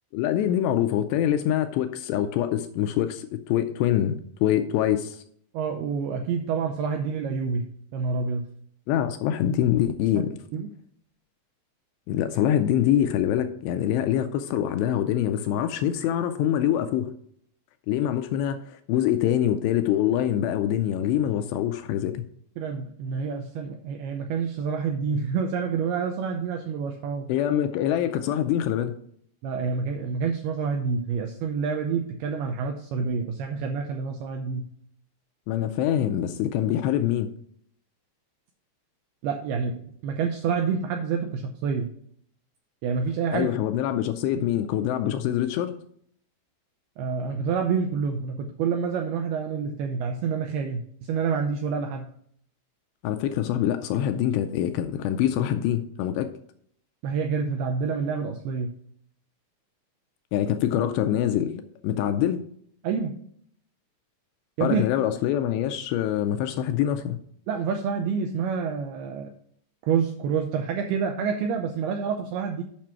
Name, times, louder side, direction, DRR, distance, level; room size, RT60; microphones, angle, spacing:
voice 1, 0.1-5.2 8.9-10.4 12.1-17.1 17.9-22.2 27.3-28.9 35.5-37.3 43.3-45.8 53.0-56.3 60.3-62.4 64.6-67.2, left 11 dB, 80° left, 8 dB, 2.6 m, -25 dB
voice 2, 5.5-7.7 7.9-8.4 10.2-10.3 10.5-10.7 22.6-27.3 29.4-34.7 39.2-41.9 42.8-43.5 44.4-44.5 47.0-52.1 57.0-58.7 62.8-63.1 64.6-64.8 67.5-69.3 69.8-72.6, right 6 dB, 85° right, 5 dB, 2.2 m, -28 dB
8.7 x 6.0 x 4.4 m, 0.64 s
omnidirectional pair, 5.3 m